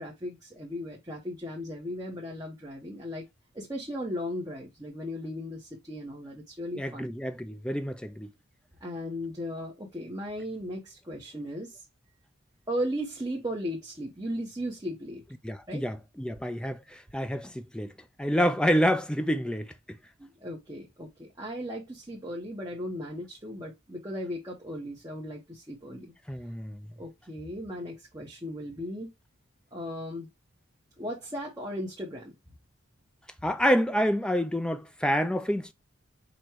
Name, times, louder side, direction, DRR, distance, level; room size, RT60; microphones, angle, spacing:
voice 1, 0.0-3.3 3.5-7.1 8.8-11.8 12.7-15.2 15.7-15.8 20.2-26.1 27.0-29.1 29.7-30.3 31.0-32.3, equal, 20° right, 0.8 m, -36 dB
voice 2, 6.7-8.3 15.4-17.9 18.2-20.0 26.3-26.8 33.4-35.7, equal, 5° left, 0.3 m, -28 dB
5.0 x 2.2 x 4.4 m
head